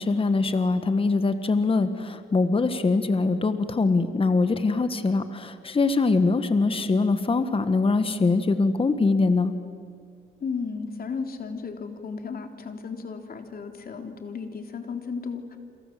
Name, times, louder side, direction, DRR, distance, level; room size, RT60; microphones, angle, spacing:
voice 1, 0.0-9.5, left 3 dB, 25° left, 10 dB, 1.6 m, -23 dB
voice 2, 10.4-15.6, left 5 dB, 50° left, 5 dB, 3.5 m, -34 dB
29.0 x 26.5 x 7.7 m, 2.2 s
cardioid pair, 90°, 20 cm